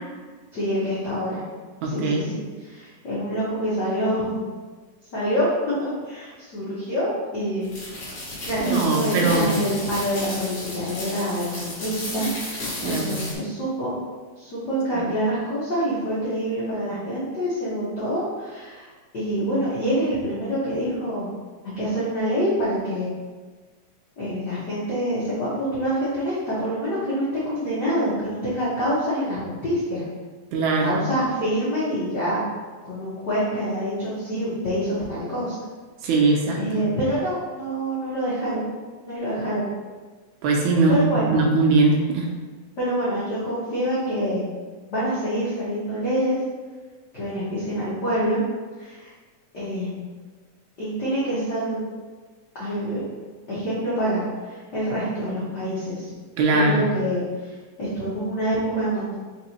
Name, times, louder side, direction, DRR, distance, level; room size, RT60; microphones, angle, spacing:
voice 1, 0.5-1.4 1.8-4.5 5.1-7.8 8.4-13.9 14.4-18.9 19.1-21.3 21.8-23.1 24.2-30.0 30.8-32.4 32.8-35.5 36.0-38.7 39.0-39.7 40.9-41.4 42.8-44.4 44.9-46.4 47.1-48.4 48.8-49.1 49.5-50.0 50.8-51.9 52.6-53.0 53.5-56.1 56.5-59.1, equal, 90° left, -10 dB, 0.9 m, -26 dB
voice 2, 1.8-2.3 8.7-9.5 12.8-13.2 14.9-15.0 30.5-31.0 36.0-36.9 40.4-41.0 41.3-42.3 56.4-56.9, right 3 dB, 80° right, 0 dB, 1.8 m, -21 dB
sound 1, 7.6-13.3, left 1 dB, 50° left, 1.4 m, -33 dB
4.2 x 4.0 x 2.9 m, 1.4 s
omnidirectional pair, 3.6 m